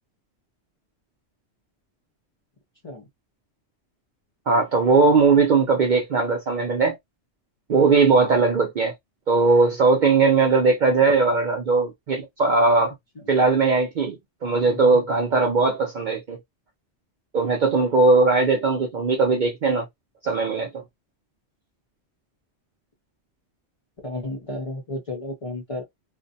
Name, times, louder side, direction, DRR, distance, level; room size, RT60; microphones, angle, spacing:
voice 1, 4.5-7.0 7.7-8.9 9.3-12.9 13.3-16.4 17.3-19.9 20.2-20.8, right 4 dB, 60° right, 0.5 m, -19 dB
voice 2, 14.7-15.0 24.0-25.8, left 2 dB, 40° left, 0.5 m, -32 dB
2.5 x 2.1 x 2.6 m
omnidirectional pair, 1.2 m